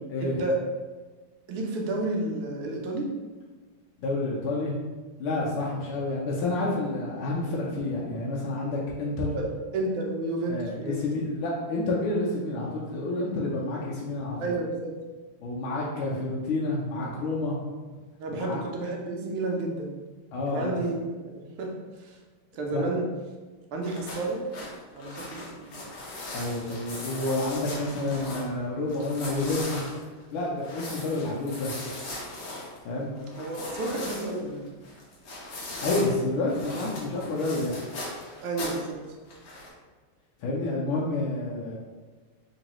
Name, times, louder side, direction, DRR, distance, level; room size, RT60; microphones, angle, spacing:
voice 1, 0.2-0.6 1.5-3.1 9.3-9.5 9.7-11.0 14.4-15.0 18.2-19.9 20.5-21.7 22.0-22.2 22.5-23.1 23.7-24.4 24.9-25.8 33.4-34.7 38.4-39.0, right 2 dB, 85° right, 0 dB, 1.5 m, -31 dB
voice 2, 4.0-4.8 5.2-9.4 10.5-14.5 15.4-17.6 18.3-18.6 20.3-20.8 22.7-22.9 26.3-29.9 30.3-31.7 32.8-33.1 35.8-37.8 40.4-41.8, left 2 dB, 80° left, -5 dB, 1.5 m, -29 dB
sound 1, 23.8-28.5 28.9-36.1 36.5-38.9 39.3-39.7, left 2 dB, 60° left, 1.3 m, -38 dB
3.7 x 3.0 x 2.9 m, 1.3 s
omnidirectional pair, 2.4 m